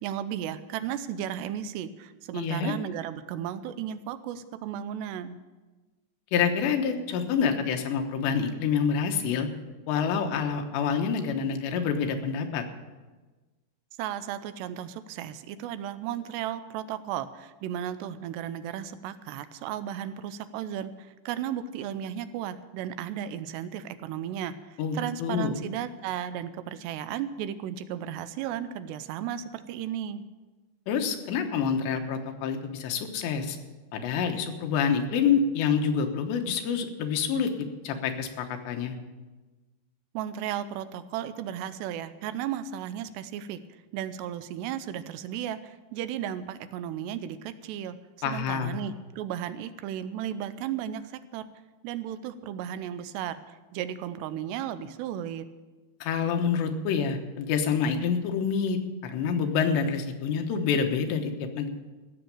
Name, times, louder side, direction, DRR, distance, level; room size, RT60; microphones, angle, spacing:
voice 1, 0.0-5.4 14.0-30.2 40.1-43.6 43.9-48.0 48.3-51.4 51.8-55.5, right 10 dB, 90° right, 12 dB, 2.8 m, -35 dB
voice 2, 2.3-2.7 6.3-9.5 9.9-12.6 24.8-25.5 30.9-33.6 33.9-37.5 37.8-38.9 48.2-48.8 56.0-61.7, left 6 dB, 85° left, 5 dB, 3.4 m, -27 dB
15.5 x 7.0 x 8.8 m, 1.2 s
omnidirectional pair, 4.9 m